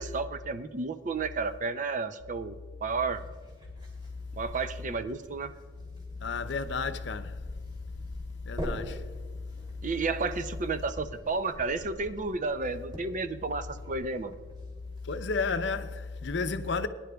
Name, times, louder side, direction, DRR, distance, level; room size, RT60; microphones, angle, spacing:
voice 1, 0.0-3.2 4.4-5.5 9.8-14.3, right 4 dB, 40° right, 0.5 m, -32 dB
sound 1, 2.9-15.3, equal, 25° right, 2.9 m, -45 dB
voice 2, 6.2-7.3 8.5-9.0 15.0-16.9, left 4 dB, 65° left, 0.6 m, -32 dB
21.5 x 10.0 x 2.3 m
head